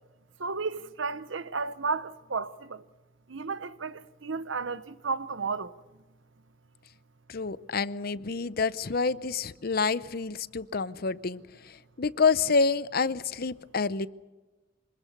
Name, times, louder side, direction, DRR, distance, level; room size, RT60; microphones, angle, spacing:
voice 1, 0.4-2.8 3.3-5.7, right 4 dB, 85° right, 1.0 m, -33 dB
voice 2, 7.3-14.1, left 4 dB, 50° left, 0.7 m, -28 dB
26.0 x 20.5 x 6.8 m
head